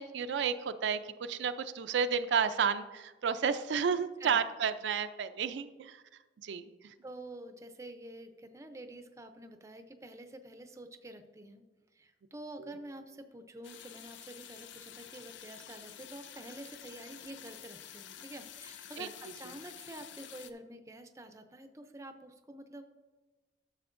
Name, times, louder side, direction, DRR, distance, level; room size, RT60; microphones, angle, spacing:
voice 1, 0.0-6.0 6.4-6.9 12.6-12.7 19.0-19.1, right 6 dB, 75° right, 10 dB, 0.4 m, -32 dB
voice 2, 7.0-11.6 11.9-22.8, right 1 dB, 15° right, 8 dB, 0.4 m, -48 dB
sound 1, 13.6-20.5, left 10 dB, 85° left, 0.5 m, -50 dB
12.0 x 6.8 x 2.5 m, 1.2 s
head